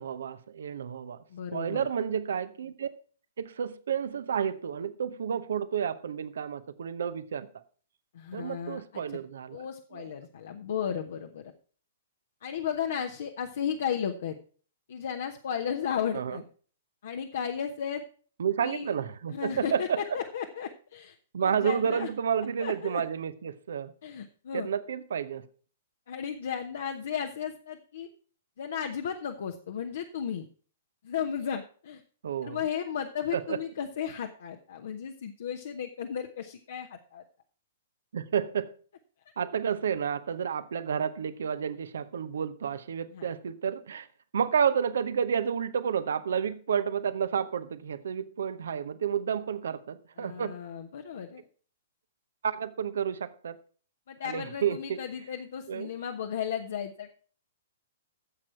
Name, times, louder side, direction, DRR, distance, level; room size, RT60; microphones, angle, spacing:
voice 1, 0.0-1.2 1.5-2.9 3.4-7.5 8.3-9.7 9.9-10.1 16.1-16.4 18.4-20.0 21.3-23.9 24.5-25.5 32.2-32.6 33.3-33.6 38.1-38.7 39.4-44.1 44.3-50.5 52.4-53.6 54.2-55.0 55.7-55.9, right 7 dB, 60° right, 0.9 m, -30 dB
voice 2, 1.3-1.9 8.1-9.0 9.5-11.5 12.4-14.3 14.9-16.4 17.0-18.0 18.6-18.9 19.3-22.1 22.6-23.0 24.0-24.7 26.1-28.1 28.6-30.4 31.0-32.0 32.4-37.2 43.1-43.3 50.2-51.4 54.1-57.1, left 8 dB, 60° left, 1.0 m, -34 dB
13.5 x 7.6 x 4.5 m
figure-of-eight pair, 115°, 0 cm